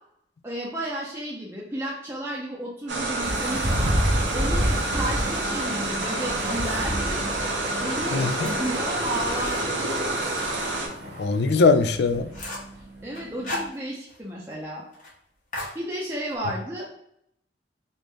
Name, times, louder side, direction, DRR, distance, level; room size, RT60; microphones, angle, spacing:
voice 1, 0.4-4.0 4.3-7.2 7.8-9.8 13.0-14.8 15.7-16.9, right 1 dB, 15° right, -4 dB, 0.5 m, -33 dB
sound 1, 2.9-10.9, right 2 dB, 85° right, 0.8 m, -29 dB
sound 2, 3.2-13.7, equal, 60° right, 0.9 m, -30 dB
sound 3, 6.1-7.1 7.6-10.8 11.2-11.3 11.7-11.8 12.0-12.8 13.1-14.2 14.5-14.6 14.9-15.1 15.5-16.4, left 1 dB, 45° left, 1.2 m, -38 dB
voice 2, 8.1-8.5 11.2-12.3, left 4 dB, 65° left, 9 dB, 0.4 m, -21 dB
3.5 x 2.5 x 3.1 m, 0.73 s
head